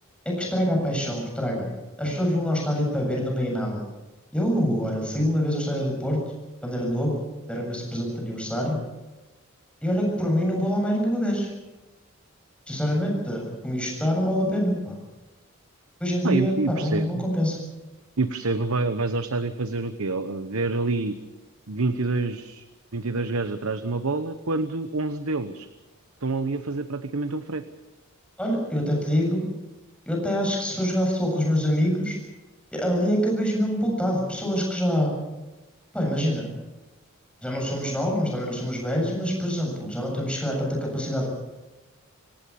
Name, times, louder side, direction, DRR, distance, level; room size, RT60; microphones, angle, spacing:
voice 1, 0.2-1.7 2.0-3.8 4.3-6.2 6.6-7.2 7.5-8.8 9.8-11.5 12.7-15.0 16.0-17.6 28.4-29.4 30.1-32.2 32.7-35.1 35.9-36.5 37.4-41.3, equal, 5° left, -1 dB, 7.4 m, -25 dB
voice 2, 16.2-17.2 18.2-21.1 21.7-22.6 22.9-25.7 26.2-27.6, right 3 dB, 80° right, 10 dB, 1.0 m, -27 dB
26.0 x 17.0 x 7.1 m, 1.1 s
head